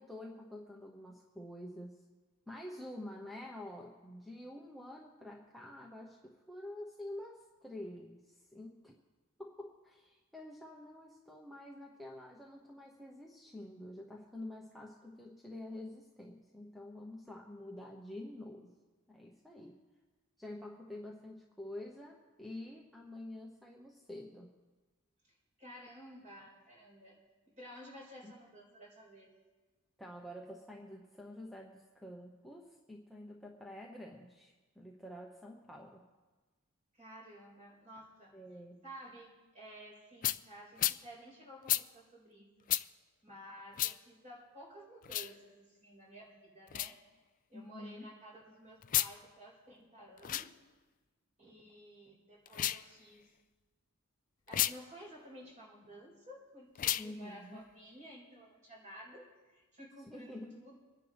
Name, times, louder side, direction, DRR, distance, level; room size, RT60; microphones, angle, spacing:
voice 1, 0.0-2.0 2.5-8.9 9.4-18.7 19.1-19.8 20.4-24.5 28.2-28.3 30.0-36.0 38.3-38.8 47.5-48.1 57.0-57.6 60.1-60.6, left 1 dB, ahead, -2 dB, 1.0 m, -48 dB
voice 2, 25.6-27.2 27.6-29.3 36.9-38.4 38.8-39.3 39.5-42.5 43.2-47.0 47.5-50.5 51.4-53.3 54.5-60.8, equal, 35° right, -3 dB, 5.0 m, -53 dB
sound 1, 40.2-40.4 40.8-41.0 41.7-41.8 42.7-42.8 43.8-43.9 45.0-45.3 46.7-46.9 48.8-49.1 50.2-50.5 52.5-52.8 54.5-54.7 56.7-57.1, left 14 dB, 40° left, 0.3 m, -32 dB
25.5 x 10.0 x 3.5 m, 1.3 s
head